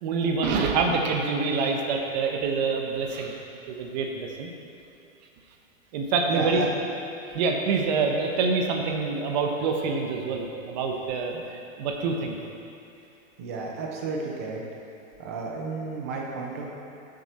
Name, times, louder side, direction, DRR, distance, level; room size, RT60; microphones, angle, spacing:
voice 1, 0.0-3.3 3.7-4.5 5.9-6.6 7.3-12.4, right 4 dB, 35° right, 2 dB, 1.0 m, -26 dB
voice 2, 6.3-6.7 11.3-11.4 13.4-14.6 15.2-16.7, right 4 dB, 15° right, -1 dB, 0.4 m, -32 dB
12.5 x 7.8 x 4.3 m, 2.8 s
hypercardioid pair, 170°, 40 cm